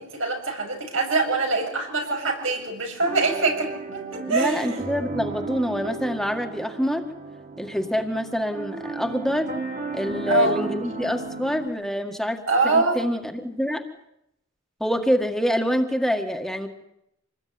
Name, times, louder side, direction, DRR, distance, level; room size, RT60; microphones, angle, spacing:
voice 1, 0.0-4.8 10.3-10.5 12.5-13.0, right 3 dB, 85° right, 2 dB, 7.5 m, -24 dB
sound 1, 3.0-11.7, right 3 dB, 45° right, 3.4 m, -34 dB
voice 2, 4.3-7.1 7.6-9.5 9.9-13.8 14.8-16.7, equal, ahead, 4 dB, 1.9 m, -26 dB
26.5 x 20.0 x 9.6 m, 0.81 s
head